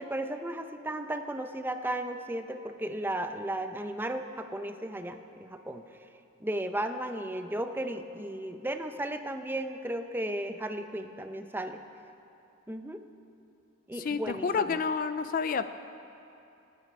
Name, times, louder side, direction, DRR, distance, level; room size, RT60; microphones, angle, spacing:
voice 1, 0.0-5.8 6.4-11.8 12.7-13.0 13.9-14.8, right 1 dB, 10° right, 7 dB, 0.6 m, -35 dB
voice 2, 14.0-15.6, left 5 dB, 40° left, 11 dB, 0.4 m, -29 dB
26.5 x 9.4 x 5.4 m, 2.8 s
head